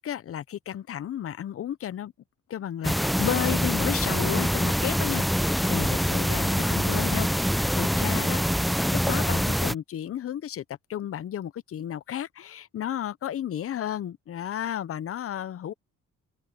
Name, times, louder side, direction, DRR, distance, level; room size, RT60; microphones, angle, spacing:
voice 1, 0.0-2.1 2.5-8.4 8.9-10.6 10.9-15.7, left 10 dB, 50° left, 0.7 m, -33 dB
sound 1, 2.8-9.7, equal, ahead, 0.4 m, -25 dB
open air
cardioid pair, 90°, 30 cm